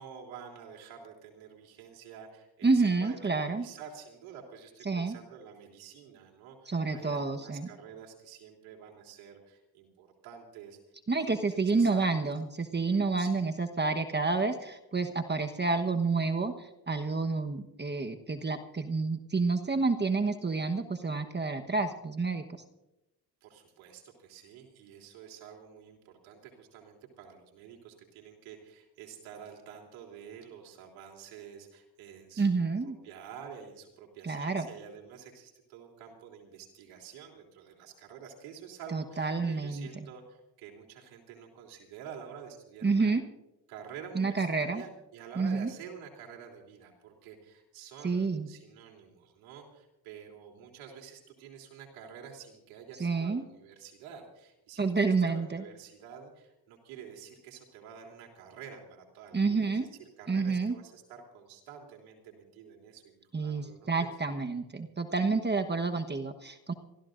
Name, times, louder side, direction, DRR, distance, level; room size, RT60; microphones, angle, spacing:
voice 1, 0.0-10.8 11.1-12.2 13.2-13.5 23.4-43.1 43.7-59.9 60.2-64.1, right 7 dB, 85° right, 0 dB, 3.4 m, -49 dB
voice 2, 2.6-3.7 4.9-5.2 6.7-7.7 11.1-22.4 32.4-33.0 34.2-34.7 38.9-39.9 42.8-43.2 44.1-44.8 45.4-45.7 48.0-48.5 53.0-53.4 54.8-55.6 59.3-59.9 60.3-60.7 63.3-66.7, right 4 dB, 20° right, 6 dB, 1.2 m, -29 dB
26.5 x 14.5 x 2.6 m, 0.94 s
supercardioid pair, 75°, 46 cm